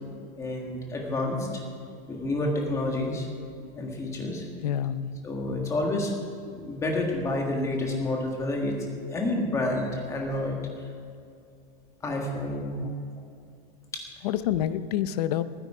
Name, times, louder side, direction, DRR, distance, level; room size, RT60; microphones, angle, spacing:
voice 1, 0.4-1.6 2.1-3.3 3.8-4.5 5.2-6.1 6.5-8.8 9.1-10.9 12.0-13.0 13.9-14.1, left 2 dB, 10° left, 0 dB, 1.6 m, -29 dB
voice 2, 4.6-5.1 12.5-12.9 14.2-15.4, left 11 dB, 45° left, 13 dB, 0.6 m, -28 dB
21.0 x 10.0 x 4.9 m, 2.4 s
supercardioid pair, 175°, 29 cm